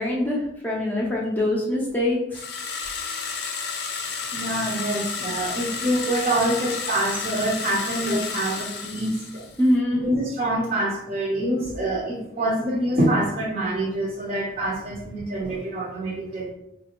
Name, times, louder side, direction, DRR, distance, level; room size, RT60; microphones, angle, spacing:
voice 1, 0.0-2.4 9.6-10.0, left 1 dB, 10° left, -4 dB, 0.6 m, -23 dB
sound 1, 2.3-9.7, left 5 dB, 60° left, 0.5 m, -31 dB
voice 2, 4.3-9.4 9.9-16.5, right 1 dB, 35° right, -4 dB, 0.7 m, -26 dB
4.5 x 2.5 x 2.9 m, 0.83 s
head